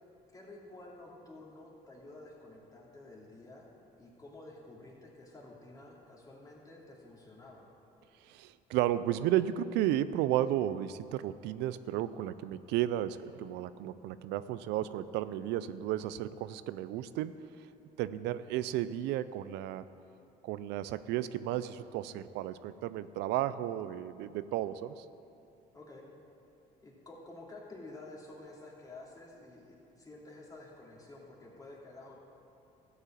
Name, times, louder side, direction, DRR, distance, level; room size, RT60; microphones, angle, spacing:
voice 1, 0.3-3.7 4.0-7.7 25.7-26.0 26.8-32.2, left 2 dB, 20° left, -4 dB, 2.6 m, -51 dB
voice 2, 8.3-17.3 18.0-19.9 20.4-25.0, right 12 dB, 90° right, 14 dB, 0.4 m, -33 dB
13.5 x 5.5 x 8.7 m, 2.7 s
cardioid pair, 110°, 17 cm